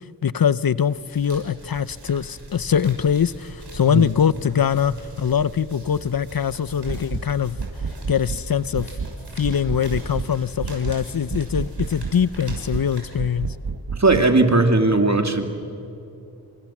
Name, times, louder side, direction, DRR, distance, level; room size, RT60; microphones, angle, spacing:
voice 1, 0.2-7.6 8.1-8.9 9.4-13.5, left 8 dB, 65° left, 0.7 m, -22 dB
sound 1, 0.8-13.7, right 2 dB, 85° right, 6.6 m, -41 dB
sound 2, 6.9-7.3 7.6-8.4 8.7-9.2 9.4-10.3 10.6-11.0 11.3-12.2 12.5-12.9 13.2-14.3, right 5 dB, 65° right, 1.4 m, -30 dB
voice 2, 14.0-15.4, right 2 dB, 45° right, 2.8 m, -17 dB
30.0 x 26.5 x 7.3 m
wide cardioid pair, 55°, 39 cm